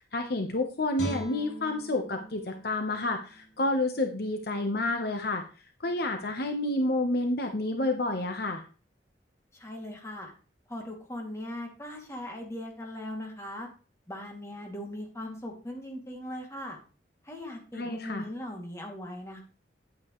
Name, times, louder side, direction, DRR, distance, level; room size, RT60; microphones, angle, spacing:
voice 1, 0.1-5.4 5.8-8.6 17.8-18.2, left 2 dB, 60° left, 5 dB, 1.1 m, -29 dB
Guitar, 1.0-4.1 4.5-4.7, equal, 75° left, 3.8 m, -41 dB
voice 2, 9.5-10.3 10.7-13.7 14.1-16.8 17.2-19.4, left 1 dB, 15° left, 0 dB, 2.4 m, -39 dB
10.5 x 9.0 x 3.1 m, 0.36 s
head